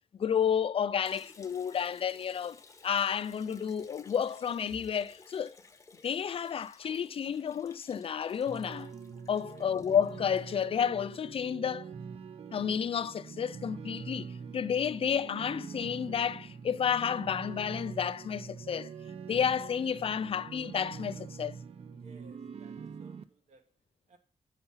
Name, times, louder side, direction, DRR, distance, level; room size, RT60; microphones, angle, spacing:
voice 1, 0.2-5.6 6.0-8.9 9.3-11.9 12.5-18.9 19.3-21.6, left 8 dB, 55° left, 0.4 m, -31 dB
Liquid, 1.0-11.1, left 4 dB, 25° left, 0.9 m, -57 dB
sound 1, 8.5-23.2, right 6 dB, 60° right, 0.6 m, -44 dB
voice 2, 22.0-23.7 24.1-24.2, right 4 dB, 85° right, 1.2 m, -58 dB
8.8 x 5.9 x 5.5 m
wide cardioid pair, 160°, 12 cm